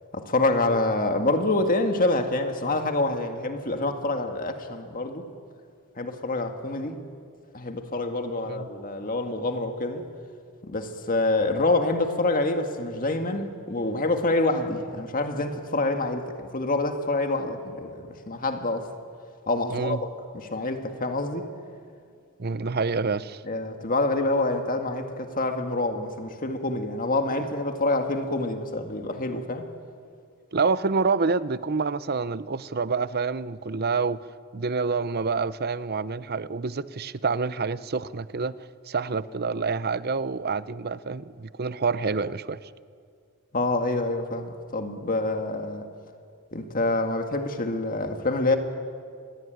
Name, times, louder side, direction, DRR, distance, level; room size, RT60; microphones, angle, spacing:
voice 1, 0.1-5.3 6.0-7.0 7.5-10.1 10.6-18.9 19.5-20.1 20.3-21.5 23.5-29.7 43.5-45.9 46.5-48.6, left 2 dB, 40° left, 1.9 m, -26 dB
voice 2, 22.4-23.4 30.5-34.2 34.5-38.5 38.9-42.6, right 4 dB, 45° right, 0.7 m, -27 dB
27.5 x 20.5 x 9.2 m
head